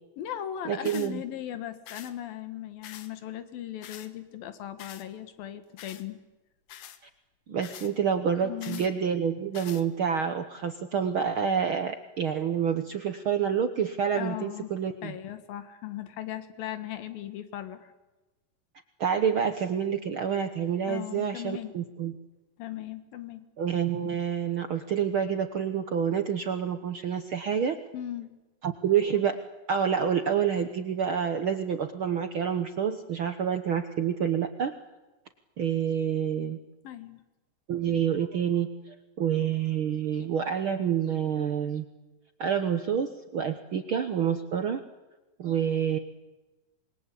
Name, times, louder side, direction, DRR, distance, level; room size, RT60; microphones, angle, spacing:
voice 1, 0.2-6.2 8.4-8.9 14.1-14.7 15.0-17.9 20.9-21.7 22.6-23.4 27.9-28.3 36.8-37.2, left 11 dB, 85° left, 11 dB, 3.4 m, -38 dB
voice 2, 0.7-1.2 7.5-15.1 19.0-22.1 23.6-27.8 28.6-29.4 29.7-34.7 35.6-36.6 37.7-41.8 42.4-44.8 45.4-46.0, right 8 dB, 75° right, 8 dB, 1.2 m, -28 dB
sound 1, 0.8-1.1 1.9-2.1 2.8-3.1 3.8-4.1 4.8-5.1 5.8-6.0 6.7-7.0 7.6-7.9 8.6-8.9 9.5-9.8, left 10 dB, 70° left, 2.8 m, -45 dB
27.0 x 22.0 x 8.5 m, 1.1 s
omnidirectional pair, 4.0 m